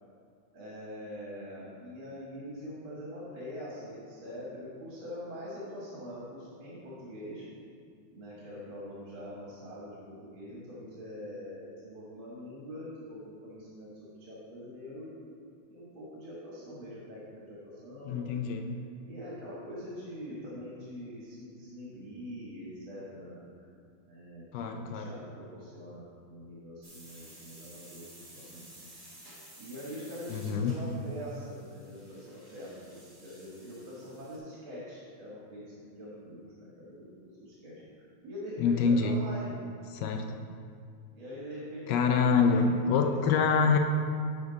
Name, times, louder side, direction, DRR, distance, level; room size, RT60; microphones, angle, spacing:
voice 1, 0.5-7.4 8.1-15.3 15.7-18.5 19.0-23.7 24.0-28.9 29.6-37.1 37.4-39.6 41.1-42.6 42.8-43.1, equal, 70° right, -6 dB, 2.4 m, -44 dB
voice 2, 18.1-18.7 24.5-25.1 30.3-30.8 38.6-39.2 39.9-40.2 41.9-43.8, left 5 dB, 70° left, 4 dB, 1.1 m, -26 dB
sound 1, 26.8-34.4, right 1 dB, 20° right, 1.8 m, -53 dB
11.0 x 5.3 x 4.0 m, 2.3 s
omnidirectional pair, 2.3 m